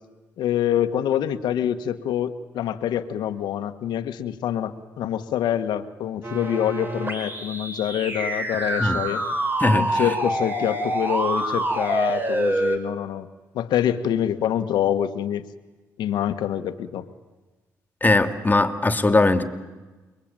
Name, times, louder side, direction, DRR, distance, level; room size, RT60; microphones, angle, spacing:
voice 1, 0.4-9.2 9.7-13.3 13.5-15.4 16.0-17.1, left 10 dB, 75° left, 1.6 m, -26 dB
sound 1, 6.2-12.8, right 1 dB, 25° right, 5.7 m, -26 dB
voice 2, 9.6-10.1 18.0-19.4, left 2 dB, 25° left, 2.8 m, -20 dB
29.0 x 22.5 x 9.1 m
supercardioid pair, 60°, 7 cm